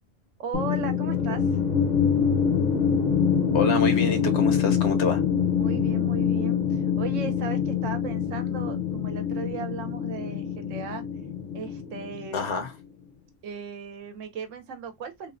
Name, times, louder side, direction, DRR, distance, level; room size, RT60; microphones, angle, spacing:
voice 1, 0.4-1.4 5.5-11.0 11.5-12.5 13.4-15.4, right 5 dB, 80° right, 1.0 m, -37 dB
sound 1, 0.5-12.7, left 7 dB, 45° left, 0.6 m, -25 dB
voice 2, 3.5-5.2 12.3-12.7, left 5 dB, 65° left, 1.0 m, -27 dB
3.1 x 2.1 x 2.5 m
omnidirectional pair, 1.3 m